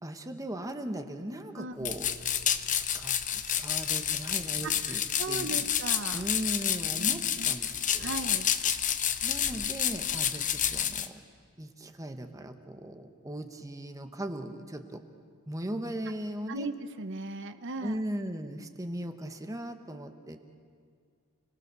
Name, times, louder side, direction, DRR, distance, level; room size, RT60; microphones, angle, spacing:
voice 1, 0.0-2.1 2.7-5.7 6.1-8.1 9.2-11.2 11.6-15.0 15.5-16.7 17.8-20.4, right 1 dB, 15° right, 6 dB, 1.2 m, -38 dB
voice 2, 1.6-1.9 4.6-6.3 7.0-7.6 8.0-8.5 16.5-18.0, right 3 dB, 55° right, 10 dB, 0.9 m, -37 dB
sound 1, 1.8-11.1, left 9 dB, 35° left, 0.9 m, -29 dB
30.0 x 19.0 x 6.8 m, 2.1 s
head